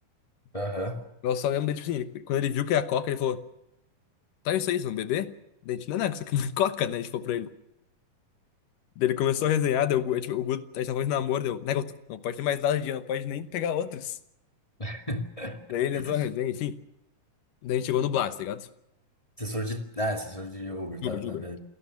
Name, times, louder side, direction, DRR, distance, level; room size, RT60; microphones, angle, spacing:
voice 1, 0.5-1.0 14.8-15.6 15.9-16.2 19.4-21.6, equal, 15° left, 4 dB, 1.5 m, -33 dB
voice 2, 1.2-3.4 4.5-5.3 5.7-7.5 9.0-14.2 15.7-16.8 17.6-18.7 21.0-21.4, left 10 dB, 75° left, 12 dB, 2.6 m, -28 dB
28.5 x 18.0 x 7.1 m, 0.83 s
omnidirectional pair, 4.0 m